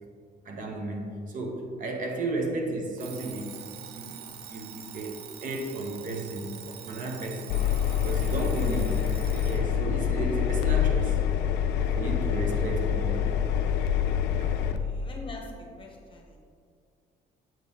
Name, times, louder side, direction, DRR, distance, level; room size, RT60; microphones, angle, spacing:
voice 1, 0.4-7.6 8.0-9.0 9.4-11.2 11.9-13.1 14.4-14.5, right 2 dB, 50° right, 2 dB, 0.9 m, -33 dB
Alarm, 3.0-9.7, right 9 dB, 75° right, 0.5 m, -44 dB
Engine, 7.5-14.8, left 9 dB, 80° left, 0.4 m, -26 dB
voice 2, 14.5-15.5 15.8-16.4, left 2 dB, 30° left, 1 dB, 1.0 m, -45 dB
7.5 x 3.5 x 4.2 m, 2.3 s
cardioid pair, 110°, 17 cm